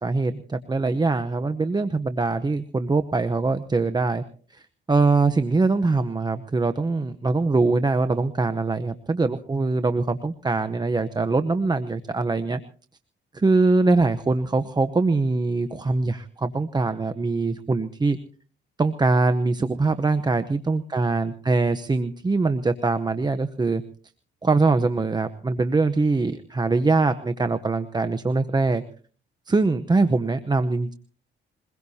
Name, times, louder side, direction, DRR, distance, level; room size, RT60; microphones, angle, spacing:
voice 1, 0.0-4.2 4.5-12.6 13.3-18.2 18.8-23.8 24.4-28.8 29.5-30.9, right 3 dB, 20° right, 10 dB, 0.8 m, -23 dB
22.5 x 21.5 x 2.8 m, 0.42 s
cardioid pair, 90°, 20 cm